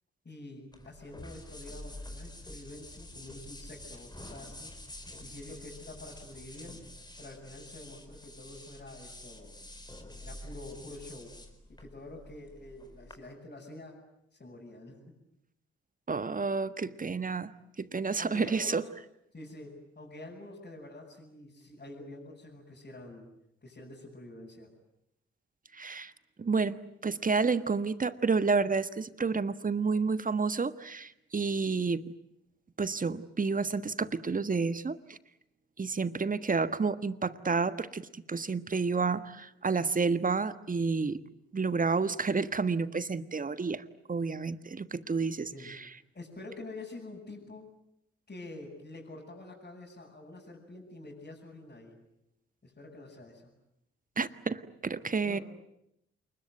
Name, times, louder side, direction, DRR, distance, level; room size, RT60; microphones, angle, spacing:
voice 1, 0.2-4.7 5.2-6.8 7.2-9.6 10.2-11.4 11.7-14.0 14.3-15.0 18.2-18.9 19.3-23.3 23.6-24.7 45.3-45.7 46.1-47.7 48.3-52.0 52.6-53.5 55.2-55.4, left 2 dB, 30° left, -5 dB, 7.8 m, -47 dB
sound 1, 0.7-13.1, left 1 dB, 15° left, 4.7 m, -48 dB
voice 2, 16.1-17.5 17.8-18.8 25.7-26.1 26.4-26.8 27.0-32.0 32.8-35.2 35.8-41.2 41.5-43.8 44.1-45.9 54.2-55.4, right 4 dB, 25° right, 14 dB, 1.4 m, -30 dB
28.5 x 21.5 x 9.3 m, 0.80 s
hypercardioid pair, 45°, 32 cm